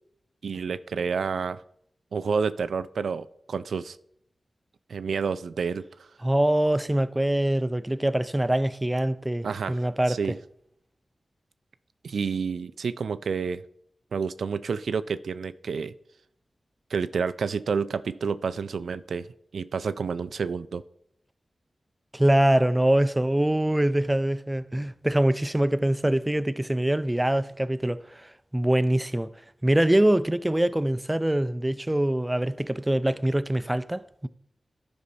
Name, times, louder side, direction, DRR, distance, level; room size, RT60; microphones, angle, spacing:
voice 1, 0.4-1.6 2.1-4.0 4.9-5.9 9.4-9.8 10.1-10.4 12.0-13.6 14.1-15.9 16.9-19.3 19.5-20.8, right 5 dB, 85° right, 0.3 m, -29 dB
voice 2, 6.2-10.4 22.1-29.3 29.6-34.3, right 1 dB, 15° right, 0.4 m, -24 dB
11.5 x 5.5 x 4.1 m
cardioid pair, 55°, 0 cm